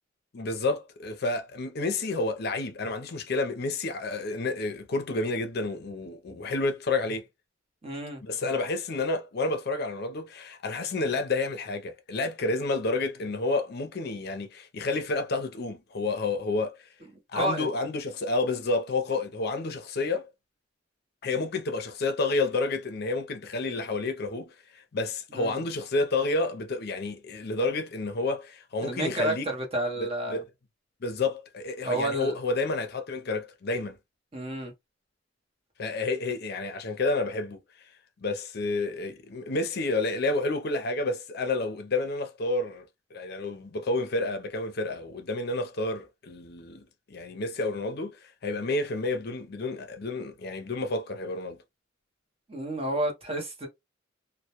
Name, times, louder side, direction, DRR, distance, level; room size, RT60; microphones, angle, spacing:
voice 1, 0.3-7.2 8.2-16.8 17.3-20.3 21.2-29.5 30.0-30.4 31.0-34.0 35.8-37.6 38.2-51.6, left 3 dB, 55° left, 0.5 m, -30 dB
voice 2, 7.8-8.2 17.3-17.7 25.3-25.6 28.8-30.4 31.9-32.4 34.3-34.7 52.5-53.7, right 1 dB, 30° right, 0.7 m, -30 dB
2.1 x 2.1 x 2.8 m
head